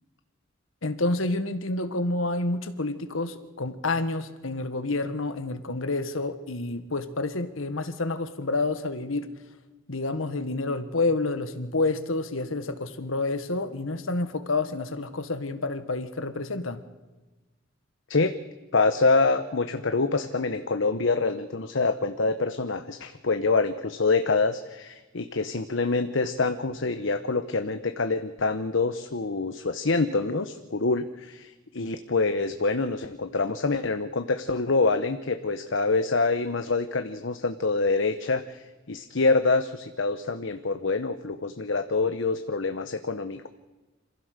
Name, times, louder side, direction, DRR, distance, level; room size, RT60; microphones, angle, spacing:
voice 1, 0.8-9.3 9.9-16.8, left 2 dB, 85° left, 11 dB, 1.5 m, -29 dB
voice 2, 18.7-43.5, left 3 dB, 65° left, 8 dB, 1.0 m, -26 dB
26.5 x 16.0 x 6.7 m, 1.2 s
head